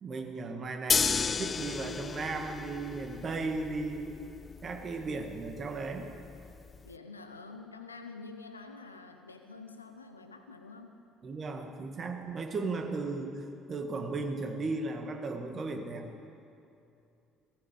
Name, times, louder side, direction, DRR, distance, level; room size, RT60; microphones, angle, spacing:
voice 1, 0.0-4.2 4.6-6.1 11.2-16.1, right 3 dB, 40° right, 5 dB, 1.7 m, -36 dB
sound 1, 0.9-6.9, left 5 dB, 35° left, 0.3 m, -34 dB
voice 2, 6.8-11.0, left 4 dB, 90° left, 7 dB, 0.7 m, -47 dB
16.0 x 15.0 x 5.2 m, 2.7 s
figure-of-eight pair, 55°, 0 cm